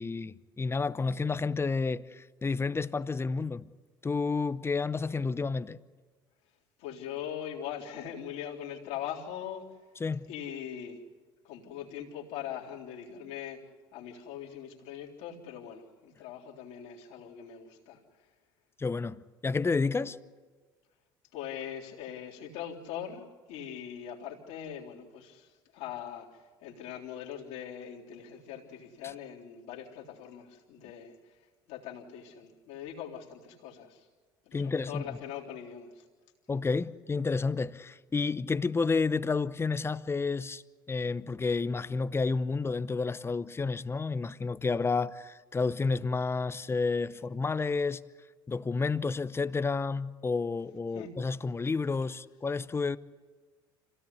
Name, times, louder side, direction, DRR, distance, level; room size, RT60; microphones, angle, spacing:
voice 1, 0.0-3.6 4.0-5.8 10.0-10.2 18.8-20.2 34.5-35.2 36.5-40.6 40.9-48.0 48.5-53.0, left 4 dB, 20° left, 0.9 m, -30 dB
voice 2, 6.8-9.7 10.3-11.0 11.4-13.6 13.9-18.0 21.3-31.2 31.7-34.1 34.5-36.0 50.9-51.1, left 9 dB, 70° left, 3.7 m, -41 dB
26.5 x 17.0 x 8.4 m
hypercardioid pair, 75°, 11 cm